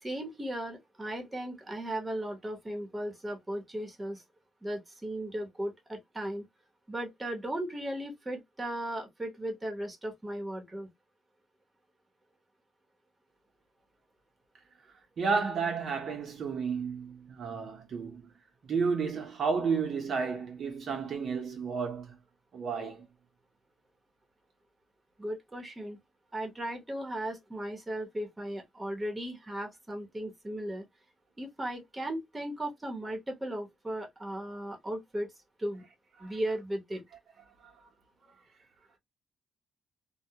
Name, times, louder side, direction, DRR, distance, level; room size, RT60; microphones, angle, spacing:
voice 1, 0.0-4.2 4.6-6.4 6.9-10.9 25.2-26.0 26.3-30.8 31.4-35.3 35.6-35.8 36.2-37.0, right 1 dB, 15° right, 0.9 m, -36 dB
voice 2, 15.2-18.3 18.7-22.2 22.5-23.1 36.2-36.3 37.6-37.7, right 5 dB, 60° right, 0.7 m, -32 dB
2.2 x 2.1 x 2.8 m
cardioid pair, 90°, 0 cm